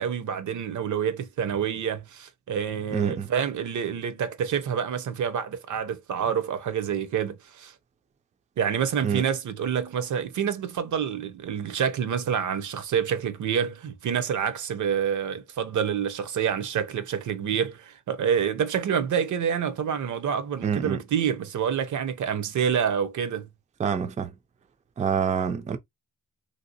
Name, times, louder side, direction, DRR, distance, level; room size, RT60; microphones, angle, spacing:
voice 1, 0.0-7.7 8.6-23.5, right 8 dB, 70° right, 0.6 m, -27 dB
voice 2, 2.9-3.3 9.0-9.3 20.6-21.0 23.8-24.3 25.0-25.8, right 7 dB, 25° right, 0.3 m, -26 dB
3.2 x 2.7 x 2.7 m
wide cardioid pair, 130°, 31 cm